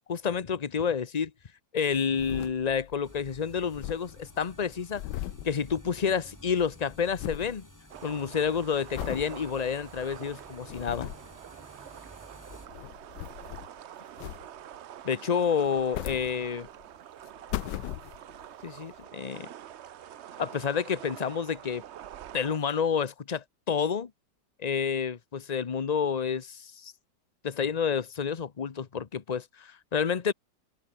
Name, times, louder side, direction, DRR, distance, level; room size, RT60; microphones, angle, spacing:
voice 1, 0.1-1.3 1.7-5.0 5.4-7.6 8.0-11.1 15.0-16.7 18.6-19.5 20.4-21.8 22.3-24.1 24.6-26.9 27.4-30.3, left 6 dB, 35° left, 0.7 m, -29 dB
sound 1, 1.9-3.0 3.3-3.4 3.6-6.3 6.6-7.6 8.1-8.4 8.9-9.3 9.8-9.9 10.5-11.3 12.3-13.8 14.2-14.8 15.6-16.9 17.3-18.5 19.0-19.1, left 14 dB, 85° left, 1.3 m, -39 dB
sound 2, 3.0-12.7, equal, 10° left, 7.4 m, -52 dB
sound 3, 7.9-22.6, right 11 dB, 60° right, 0.7 m, -46 dB
omnidirectional pair, 1.8 m